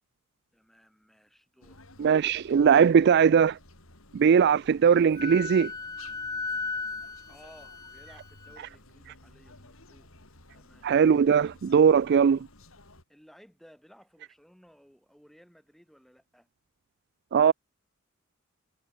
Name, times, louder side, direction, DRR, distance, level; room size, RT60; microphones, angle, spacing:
voice 1, 0.5-1.8 7.3-10.1 10.5-10.9 13.1-16.5, equal, ahead, 7.8 m, -57 dB
sound 1, 1.6-13.0, left 2 dB, 75° left, 7.0 m, -54 dB
voice 2, 2.0-3.6 4.1-5.7 10.8-12.5 17.3-17.5, right 7 dB, 50° right, 0.3 m, -20 dB
Wind instrument woodwind instrument, 5.1-8.6, left 4 dB, 15° left, 0.5 m, -36 dB
head